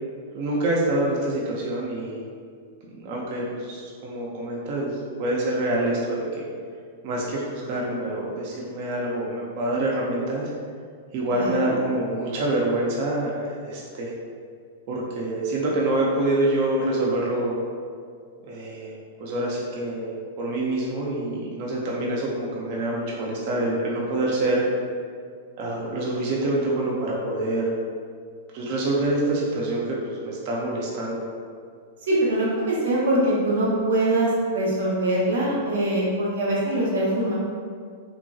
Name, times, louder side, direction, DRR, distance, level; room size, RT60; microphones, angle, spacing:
voice 1, 0.3-2.2 2.9-6.5 7.0-10.5 11.1-14.1 14.9-17.6 18.4-24.6 25.6-27.7 28.5-31.2, right 1 dB, 50° right, -3 dB, 0.5 m, -26 dB
voice 2, 11.3-11.8 32.1-37.3, right 1 dB, 75° right, -5 dB, 0.8 m, -23 dB
3.0 x 2.5 x 2.2 m, 2.1 s
hypercardioid pair, 105°, 0 cm